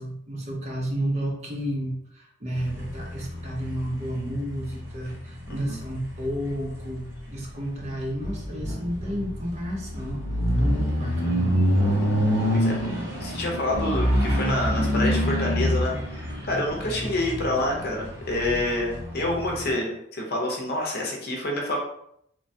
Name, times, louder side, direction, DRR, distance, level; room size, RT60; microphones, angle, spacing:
voice 1, 0.0-10.2 10.6-11.5, equal, 30° right, -1 dB, 0.5 m, -31 dB
sound 1, 2.5-19.7, equal, 60° right, 1.1 m, -27 dB
voice 2, 5.5-5.8 12.5-21.8, left 1 dB, 50° left, -1 dB, 0.7 m, -28 dB
3.2 x 2.1 x 2.7 m, 0.71 s
head